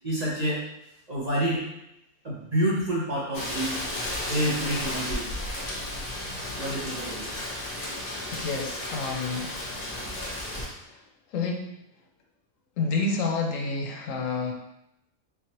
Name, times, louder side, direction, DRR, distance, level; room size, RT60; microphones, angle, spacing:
voice 1, 0.0-0.6 1.1-1.6 2.2-3.8 4.3-5.3 6.6-7.4, right 1 dB, 40° right, -6 dB, 0.7 m, -28 dB
Rain, 3.3-10.7, left 1 dB, 35° left, 0.8 m, -33 dB
voice 2, 8.3-9.5 10.8-11.0 11.3-11.6 12.8-14.5, left 4 dB, 75° left, 2 dB, 1.0 m, -29 dB
3.6 x 3.1 x 2.9 m, 0.86 s
omnidirectional pair, 1.4 m